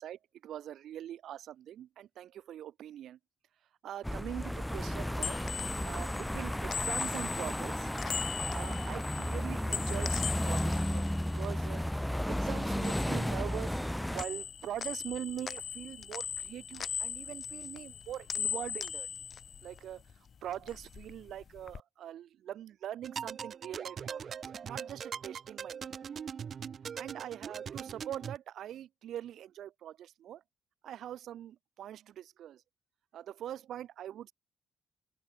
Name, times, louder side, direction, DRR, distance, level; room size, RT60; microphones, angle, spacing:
voice 1, 0.0-3.2 3.8-7.9 8.5-11.1 11.3-11.8 12.3-13.8 14.1-19.1 19.6-20.0 20.4-24.4 24.7-26.0 26.9-30.4 30.8-32.6 33.1-34.3, right 11 dB, 75° right, 1.1 m, -43 dB
sound 1, 4.0-14.2, equal, 5° left, 0.3 m, -33 dB
sound 2, 5.2-12.2 12.5-13.9 14.2-20.2 20.5-21.8, left 7 dB, 50° left, 2.7 m, -40 dB
sound 3, 23.0-28.4, right 7 dB, 50° right, 5.0 m, -41 dB
open air
cardioid pair, 90°, 0 cm